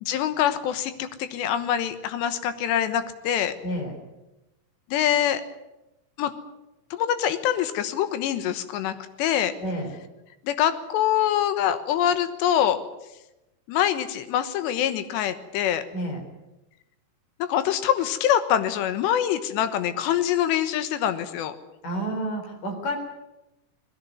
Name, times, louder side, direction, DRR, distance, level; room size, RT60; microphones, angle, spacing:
voice 1, 0.0-3.5 4.9-5.4 6.2-6.3 6.9-9.5 10.4-12.8 13.7-15.8 17.4-21.6, left 10 dB, 80° left, 10 dB, 3.4 m, -24 dB
voice 2, 3.6-4.0 9.6-9.9 15.9-16.2 21.8-22.9, right 1 dB, 50° left, 3 dB, 5.7 m, -30 dB
20.5 x 16.5 x 9.7 m, 0.98 s
omnidirectional pair, 4.9 m